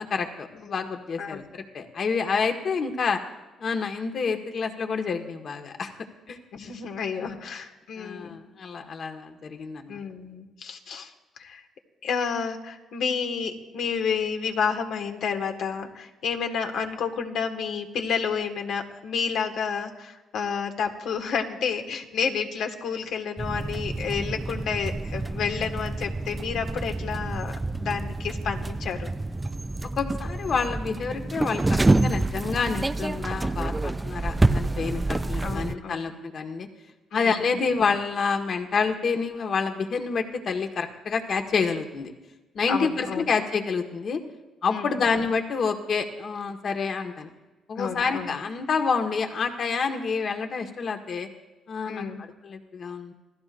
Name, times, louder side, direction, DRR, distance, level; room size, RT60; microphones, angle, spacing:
voice 1, 0.0-3.2 3.6-5.9 6.3-6.7 7.1-7.4 8.0-10.0 30.0-36.7 37.1-42.1 42.5-44.2 44.6-47.3 47.7-51.3 51.7-53.1, left 5 dB, 55° left, 4 dB, 1.7 m, -28 dB
voice 2, 6.5-8.4 9.9-11.1 11.4-11.6 12.0-29.1 35.4-36.1 37.1-37.4 42.7-43.2 44.7-44.9 47.8-48.4 51.9-52.2, left 6 dB, 75° left, 4 dB, 1.9 m, -30 dB
sound 1, 23.4-35.7, right 2 dB, 15° right, 0.5 m, -27 dB
27.0 x 16.5 x 2.6 m, 1.1 s
cardioid pair, 90°, 0 cm